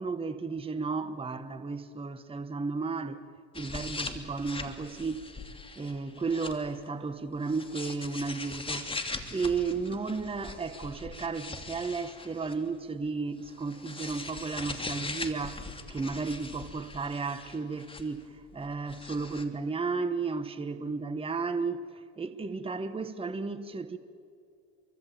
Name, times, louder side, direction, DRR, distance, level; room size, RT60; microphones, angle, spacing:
voice 1, 0.0-3.2 3.5-5.2 5.8-8.9 9.3-18.2 18.5-21.8 22.2-24.0, right 4 dB, 15° right, 1.3 m, -33 dB
sound 1, 3.5-6.7 7.4-12.7 13.4-18.2 18.5-19.4, left 3 dB, 15° left, 2.8 m, -41 dB
27.5 x 24.0 x 8.7 m
supercardioid pair, 95°, 36 cm